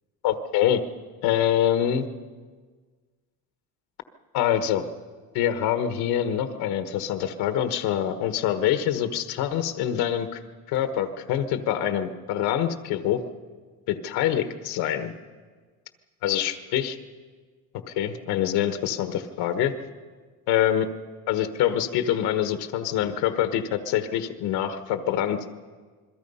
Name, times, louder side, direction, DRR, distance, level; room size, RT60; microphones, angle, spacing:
voice 1, 0.2-0.8 1.2-2.1 4.3-4.9 5.3-10.4 10.7-13.2 13.9-15.1 16.2-17.0 17.9-19.7 20.5-20.9 21.3-25.5, left 10 dB, 85° left, 9 dB, 1.4 m, -25 dB
27.5 x 21.5 x 5.6 m, 1.5 s
cardioid pair, 170°, 36 cm